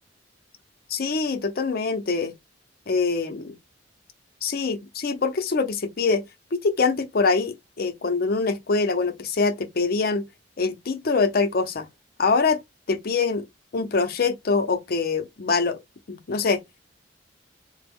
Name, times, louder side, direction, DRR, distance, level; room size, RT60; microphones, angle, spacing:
voice 1, 0.9-2.3 2.9-3.6 4.4-6.2 6.5-10.2 10.6-11.9 12.2-12.6 12.9-13.5 13.7-15.8 16.1-16.6, left 4 dB, 55° left, 0.5 m, -24 dB
3.9 x 2.0 x 3.4 m
head